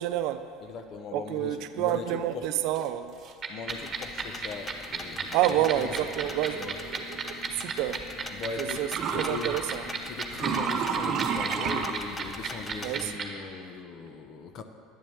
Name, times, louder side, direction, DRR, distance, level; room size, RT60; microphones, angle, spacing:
voice 1, 0.0-0.4 1.1-3.1 5.3-8.0 8.6-8.9 9.2-9.8 12.8-13.2, right 12 dB, 65° right, 10 dB, 0.6 m, -29 dB
voice 2, 0.6-2.6 3.5-6.0 6.5-6.9 8.3-9.6 10.0-14.6, left 5 dB, 45° left, 7 dB, 0.8 m, -39 dB
sound 1, 2.8-2.9 3.2-3.3 7.7-7.8 8.9-9.6 10.3-11.9, right 7 dB, 45° right, 0.9 m, -29 dB
sound 2, 3.4-13.2, right 6 dB, 30° right, 1.5 m, -32 dB
sound 3, 3.7-13.2, left 3 dB, 15° left, 0.7 m, -43 dB
10.5 x 7.4 x 7.1 m, 2.3 s
supercardioid pair, 115°, 0 cm